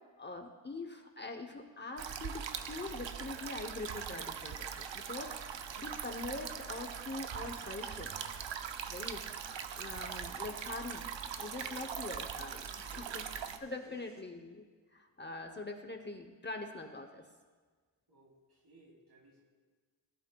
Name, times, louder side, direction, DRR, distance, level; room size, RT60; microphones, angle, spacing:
voice 1, 0.2-5.3 5.8-8.1 8.9-11.1 11.4-14.6 14.9-17.2, left 2 dB, 25° left, 4 dB, 0.7 m, -43 dB
sound 1, 2.0-13.6, right 7 dB, 75° right, 0.7 m, -41 dB
sound 2, 5.7-14.2, equal, 10° left, 2.4 m, -66 dB
voice 2, 11.5-11.9 12.8-14.0 18.1-19.4, equal, 55° right, -2 dB, 3.2 m, -61 dB
20.0 x 11.5 x 2.3 m, 1.5 s
wide cardioid pair, 115°, 45 cm